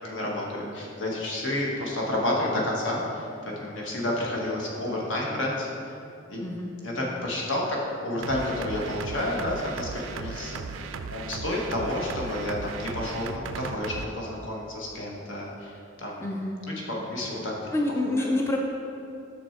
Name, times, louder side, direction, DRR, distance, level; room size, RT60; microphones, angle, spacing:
voice 1, 0.0-3.3 3.6-5.7 6.3-6.4 6.8-16.2 16.9-17.5 18.2-18.3, left 1 dB, 70° left, -2 dB, 1.3 m, -30 dB
voice 2, 6.4-6.7 16.2-16.6 17.7-18.6, left 2 dB, 15° left, 0 dB, 0.4 m, -27 dB
sound 1, 8.2-14.1, right 5 dB, 85° right, 0.4 m, -37 dB
6.2 x 6.1 x 4.3 m, 2.8 s
head